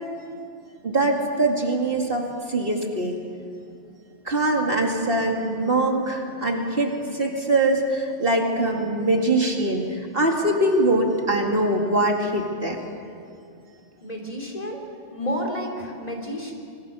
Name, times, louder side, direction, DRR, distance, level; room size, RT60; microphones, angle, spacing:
voice 1, 0.8-3.2 4.2-12.9, right 2 dB, 50° right, 1 dB, 2.4 m, -23 dB
voice 2, 14.0-14.8 15.1-16.5, equal, 30° left, 1 dB, 3.4 m, -30 dB
25.5 x 22.0 x 6.9 m, 2.4 s
omnidirectional pair, 1.3 m